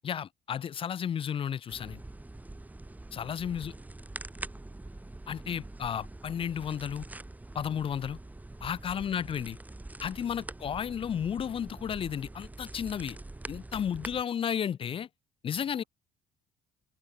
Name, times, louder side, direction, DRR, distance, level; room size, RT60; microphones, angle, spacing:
voice 1, 0.0-2.0 3.1-3.7 5.3-7.0 7.5-8.2 8.6-9.6 10.0-13.2 13.5-15.1 15.4-15.8, left 8 dB, 35° left, 0.4 m, -33 dB
sound 1, 1.7-14.2, right 2 dB, 10° right, 1.3 m, -45 dB
voice 2, 8.8-9.5 14.0-14.6 15.8-15.9, right 10 dB, 55° right, 6.9 m, -71 dB
open air
cardioid pair, 110°, 17 cm